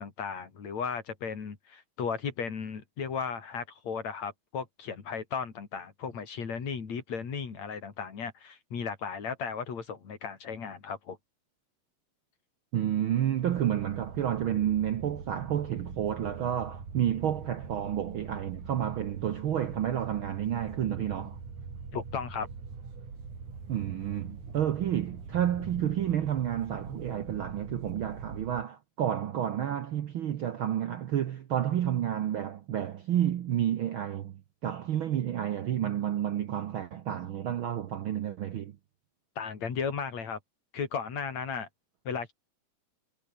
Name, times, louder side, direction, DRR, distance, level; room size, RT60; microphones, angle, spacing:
voice 1, 0.0-11.2 21.9-22.5 39.4-40.4 40.7-41.7 42.0-42.3, left 6 dB, 65° left, 4.6 m, -35 dB
voice 2, 12.7-21.4 23.7-38.7, right 10 dB, 60° right, 1.4 m, -30 dB
sound 1, 13.4-28.6, right 5 dB, 90° right, 6.3 m, -43 dB
omnidirectional pair, 3.4 m